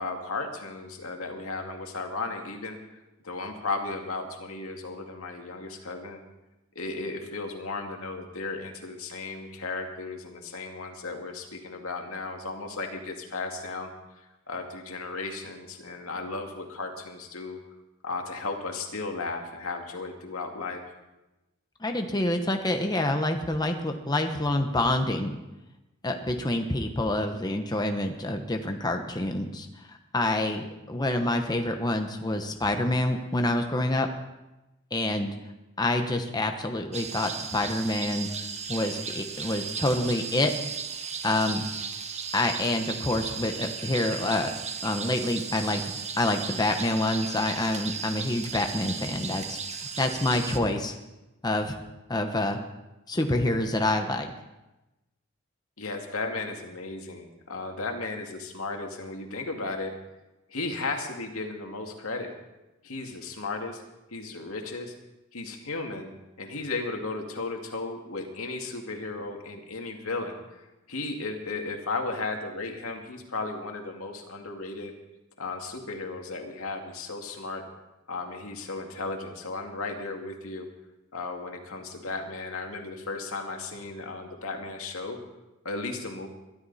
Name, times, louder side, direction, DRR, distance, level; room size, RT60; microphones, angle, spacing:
voice 1, 0.0-2.8 3.2-6.2 6.8-13.9 14.2-17.6 18.0-20.9 55.8-59.9 60.5-62.3 62.8-63.8 64.1-64.9 65.3-66.1 66.4-74.9 75.4-77.6 78.1-80.7 81.1-85.2 85.6-86.3, left 3 dB, 75° left, 3 dB, 2.3 m, -35 dB
voice 2, 21.8-25.4 26.0-34.1 34.9-35.3 35.8-38.3 38.7-40.5 41.2-41.6 42.3-44.5 44.8-50.9 51.4-51.8 52.1-52.6 53.1-54.3, left 1 dB, 20° left, 5 dB, 1.0 m, -27 dB
sound 1, 36.9-50.6, right 6 dB, 30° right, 1.2 m, -36 dB
22.0 x 13.0 x 4.2 m, 1.0 s
head